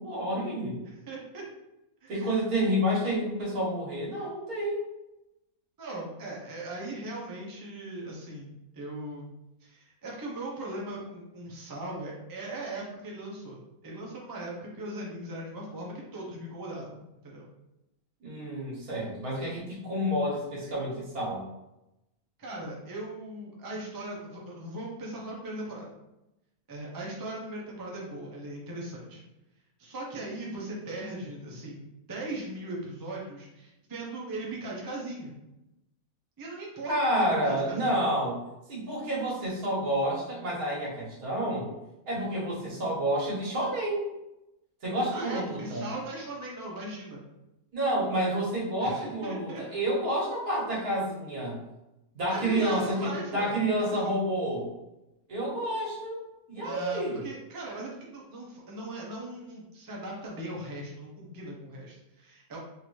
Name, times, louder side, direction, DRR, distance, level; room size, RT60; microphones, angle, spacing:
voice 1, 0.0-0.8 2.1-4.9 18.2-21.4 36.9-38.4 38.7-41.7 42.1-44.0 44.8-45.9 47.7-51.6 52.1-54.7 55.3-56.2 56.5-57.2, right 1 dB, 80° right, -5 dB, 1.8 m, -29 dB
voice 2, 0.8-1.4 2.0-2.3 5.8-9.2 9.6-17.5 22.4-25.9 26.7-29.2 29.8-35.3 36.4-38.0 45.1-47.2 48.8-49.6 52.3-53.5 53.9-54.0 56.6-62.6, right 1 dB, 25° right, -3 dB, 0.5 m, -39 dB
3.8 x 2.7 x 3.1 m, 0.92 s
omnidirectional pair, 1.6 m